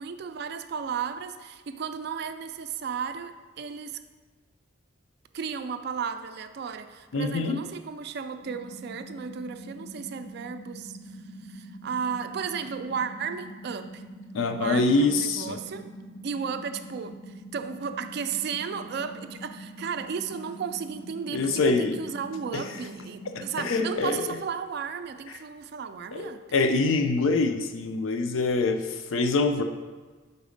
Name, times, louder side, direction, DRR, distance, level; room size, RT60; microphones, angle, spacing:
voice 1, 0.0-4.0 5.3-14.0 14.5-15.9 16.2-26.4, right 6 dB, 55° right, 9 dB, 0.3 m, -34 dB
voice 2, 7.1-7.6 14.3-15.6 21.3-21.9 22.5-22.6 23.3-24.4 26.1-29.6, left 3 dB, 85° left, 7 dB, 0.5 m, -25 dB
sound 1, 8.4-24.0, right 1 dB, 10° left, 0.6 m, -44 dB
5.0 x 4.1 x 5.0 m, 1.4 s
head